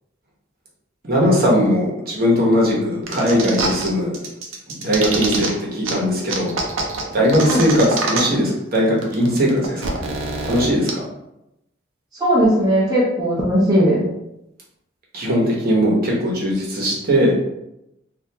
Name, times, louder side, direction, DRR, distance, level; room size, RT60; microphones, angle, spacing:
voice 1, 1.0-4.1 4.8-6.5 7.1-10.0 10.4-11.1 15.1-17.3, equal, 50° right, -3 dB, 0.9 m, -19 dB
sound 1, 3.1-3.9 4.1-5.5 5.8-5.9 6.3-8.5 8.8-8.9 9.0-10.9, right 3 dB, 90° right, 0.6 m, -25 dB
voice 2, 12.2-14.0, equal, 20° right, -7 dB, 0.6 m, -17 dB
2.8 x 2.4 x 3.3 m, 0.87 s
head